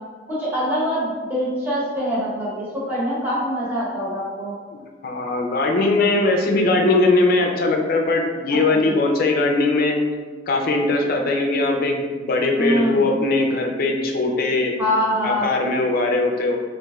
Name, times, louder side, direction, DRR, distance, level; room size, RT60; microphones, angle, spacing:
voice 1, 0.3-4.5 8.8-8.9 12.6-13.0 14.8-15.4, equal, 10° right, -9 dB, 0.9 m, -24 dB
voice 2, 5.0-10.0 10.5-14.7 15.2-16.6, left 2 dB, 55° left, 2 dB, 0.4 m, -20 dB
3.0 x 2.5 x 2.3 m, 1.5 s
head